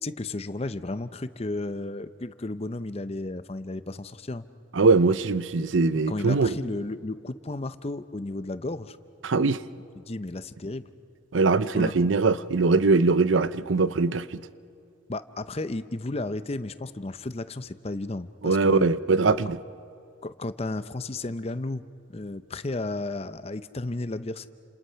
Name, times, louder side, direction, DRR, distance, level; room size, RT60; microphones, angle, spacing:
voice 1, 0.0-4.5 6.1-9.0 10.0-10.9 11.7-12.1 15.1-18.9 20.2-21.8 22.1-24.5, left 2 dB, 30° left, 13 dB, 0.7 m, -33 dB
voice 2, 4.7-6.6 9.2-9.6 11.3-14.4 18.4-19.6, right 3 dB, 90° right, 15 dB, 0.7 m, -22 dB
29.5 x 27.5 x 5.7 m, 2.5 s
head